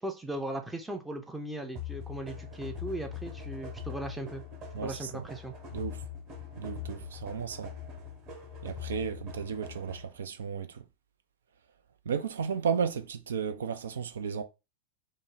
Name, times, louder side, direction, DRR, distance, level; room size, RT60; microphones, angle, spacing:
voice 1, 0.0-4.4 4.8-5.5, right 1 dB, 5° right, 0.5 m, -38 dB
sound 1, 1.8-10.2, left 7 dB, 35° right, 1.0 m, -42 dB
voice 2, 4.7-5.2 5.7-6.0 6.6-7.7 8.6-10.8 12.1-14.4, right 6 dB, 65° right, 0.3 m, -34 dB
3.0 x 2.0 x 3.8 m
figure-of-eight pair, 90°, 0 cm